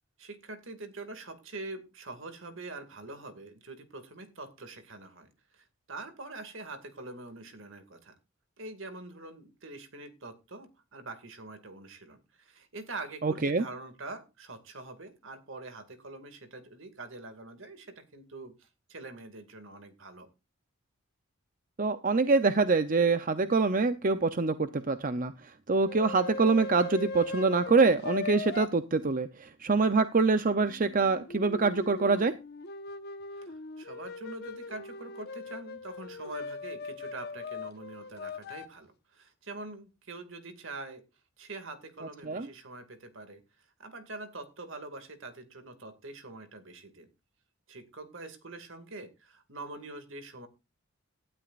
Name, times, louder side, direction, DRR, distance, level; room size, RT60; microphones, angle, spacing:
voice 1, 0.2-8.1 8.6-20.3 33.4-41.0 41.4-47.1 47.7-50.5, right 2 dB, 65° right, 9 dB, 2.3 m, -44 dB
voice 2, 13.2-13.6 21.8-25.3 25.7-32.3 42.3-42.5, right 4 dB, 40° right, 10 dB, 0.7 m, -25 dB
sound 1, 25.9-28.7 30.6-38.7, left 3 dB, 50° left, 1.2 m, -40 dB
18.0 x 12.5 x 2.5 m, 0.28 s
head